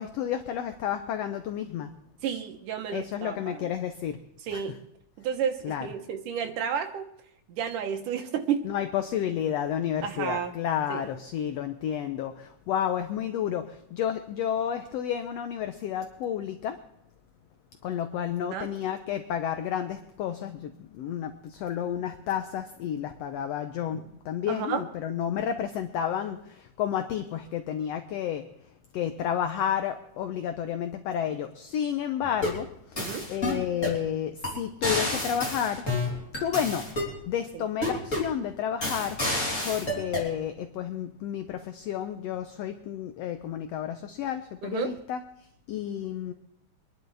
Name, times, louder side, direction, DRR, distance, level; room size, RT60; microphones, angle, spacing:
voice 1, 0.0-1.9 2.9-4.2 4.5-4.8 5.6-5.9 8.6-16.8 17.8-28.4 28.9-33.0 33.3-35.8 36.4-36.9 37.2-39.2 39.6-45.2 45.7-46.3, left 9 dB, 75° left, 8 dB, 1.5 m, -31 dB
voice 2, 2.2-3.7 4.4-4.7 5.2-7.1 7.5-8.6 10.0-10.5 10.9-11.1 18.5-18.7 23.9-24.0 24.5-24.8 33.0-33.3 37.5-37.6 44.6-45.0, right 8 dB, 85° right, 5 dB, 2.8 m, -31 dB
sound 1, 32.2-32.6 33.0-34.0 34.4-34.5 34.8-37.1 37.8-38.3 38.8-40.3, left 1 dB, 25° left, 3.5 m, -29 dB
25.5 x 11.0 x 3.4 m, 0.77 s
omnidirectional pair, 3.6 m